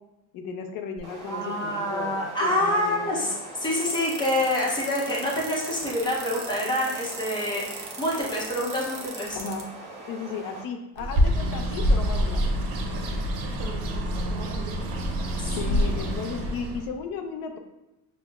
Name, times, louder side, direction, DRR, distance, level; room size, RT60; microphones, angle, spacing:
voice 1, 0.3-3.3 9.3-9.7 10.1-12.5 12.9-13.1 15.5-17.6, left 5 dB, 80° left, 5 dB, 0.5 m, -35 dB
sound 1, 1.0-10.6, right 1 dB, 15° right, 1.4 m, -42 dB
voice 2, 1.3-9.4 15.4-15.8, left 1 dB, 15° left, -3 dB, 0.7 m, -27 dB
sound 2, 3.6-9.6, right 5 dB, 40° right, 0.6 m, -39 dB
Bird, 11.0-16.9, equal, 80° right, 0.7 m, -26 dB
5.9 x 2.1 x 2.3 m, 0.94 s
cardioid pair, 160°, 33 cm